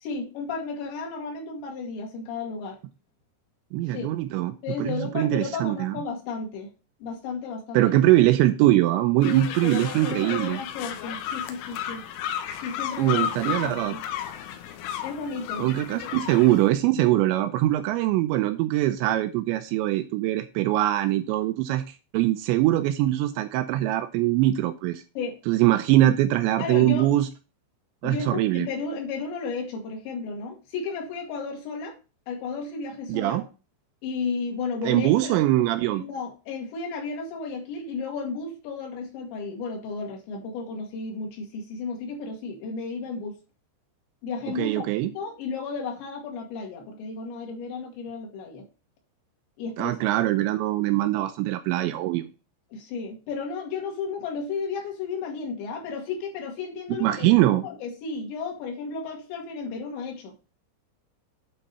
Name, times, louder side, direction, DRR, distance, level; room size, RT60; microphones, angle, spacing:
voice 1, 0.0-2.8 3.9-4.1 4.6-6.7 7.0-8.0 9.2-12.0 12.6-14.0 15.0-15.7 16.0-16.2 25.2-25.3 26.6-27.1 28.0-32.0 32.3-33.4 34.0-35.4 36.0-43.4 44.2-48.6 49.6-50.2 52.7-57.3 57.6-60.3, left 4 dB, 70° left, 0 dB, 4.2 m, -33 dB
voice 2, 3.7-5.9 7.7-10.6 13.0-14.0 15.6-21.8 22.1-25.0 25.5-27.3 28.0-28.7 33.1-33.5 34.8-36.1 44.5-45.1 49.8-52.3 56.9-57.6, right 15 dB, 85° right, 9 dB, 2.7 m, -22 dB
sound 1, 9.2-16.7, left 10 dB, 90° left, 3.6 m, -33 dB
9.0 x 4.2 x 5.4 m, 0.31 s
omnidirectional pair, 5.5 m